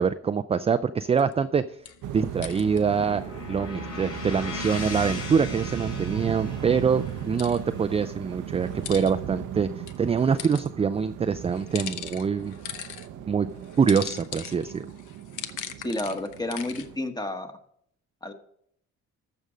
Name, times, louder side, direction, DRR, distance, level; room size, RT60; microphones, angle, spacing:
voice 1, 0.0-1.6 2.1-3.2 3.5-9.7 10.0-12.5 13.3-13.5 13.8-14.8, right 6 dB, 20° right, 11 dB, 0.3 m, -24 dB
sound 1, 1.1-1.3 1.8-2.8 7.1-7.6 8.6-9.1 9.9-10.7 11.5-13.1 13.6-16.9, left 10 dB, 80° left, 0.8 m, -39 dB
sound 2, 1.9-10.1, left 4 dB, 50° left, 4.4 m, -40 dB
sound 3, 2.0-17.0, right 10 dB, 80° right, 0.7 m, -37 dB
voice 2, 15.8-17.5 18.2-18.3, left 1 dB, 15° left, 7 dB, 1.2 m, -31 dB
14.0 x 5.3 x 5.0 m, 0.68 s
cardioid pair, 90°, 30 cm